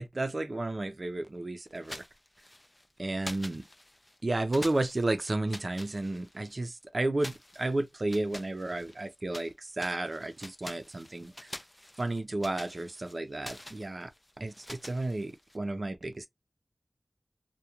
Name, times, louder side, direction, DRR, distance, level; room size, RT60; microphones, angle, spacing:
voice 1, 0.0-2.0 3.0-3.6 4.2-11.5 12.0-14.1 14.4-16.3, right 2 dB, 50° right, 0.5 m, -32 dB
sound 1, 1.7-2.9 3.2-4.2 4.5-6.6 7.2-9.5 9.8-15.6, left 1 dB, 20° left, 0.3 m, -47 dB
2.3 x 2.2 x 2.8 m
wide cardioid pair, 50°, 0 cm